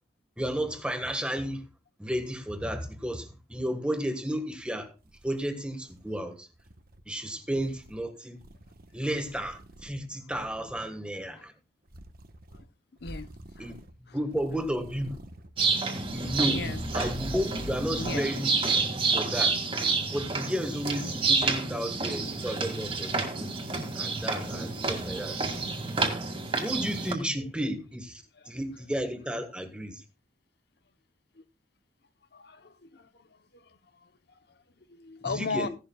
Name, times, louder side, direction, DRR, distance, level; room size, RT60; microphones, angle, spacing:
voice 1, 0.4-1.6 2.0-4.9 5.2-6.5 7.1-8.4 8.9-11.5 13.6-13.8 14.1-15.2 16.1-16.6 16.9-18.5 19.1-19.6 20.1-23.5 23.9-25.4 26.6-30.0 35.3-35.7, equal, 5° right, 1.5 m, -32 dB
sound 1, 4.6-4.7 5.0-6.2 6.6-7.0 7.5-8.0 8.4-10.0 10.3-10.8 11.9-12.6 13.0-13.9 14.3-15.5 15.9-18.2, equal, 50° right, 1.1 m, -44 dB
sound 2, 15.6-27.1, right 4 dB, 30° right, 2.1 m, -29 dB
voice 2, 16.5-16.8 18.0-18.3 26.3-26.5 27.3-27.5 28.3-28.5 31.4-31.5 32.3-34.1 34.5-34.6 34.9-35.7, left 4 dB, 60° left, 0.9 m, -38 dB
16.5 x 11.5 x 2.3 m
head